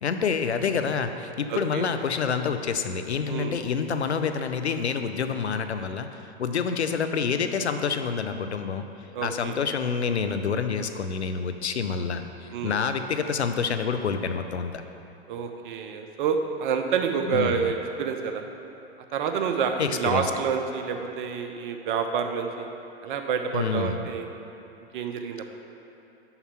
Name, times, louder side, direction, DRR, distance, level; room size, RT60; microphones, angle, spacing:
voice 1, 0.0-8.9 9.2-14.8 17.3-17.7 19.8-20.3 23.5-24.0, left 6 dB, 85° left, 8 dB, 0.5 m, -27 dB
voice 2, 1.5-1.9 3.3-3.6 9.1-9.5 12.5-12.8 15.3-18.4 19.1-22.7 23.0-24.3 24.9-25.5, right 6 dB, 50° right, 5 dB, 0.7 m, -28 dB
5.7 x 5.5 x 5.8 m, 2.8 s
figure-of-eight pair, 100°, 32 cm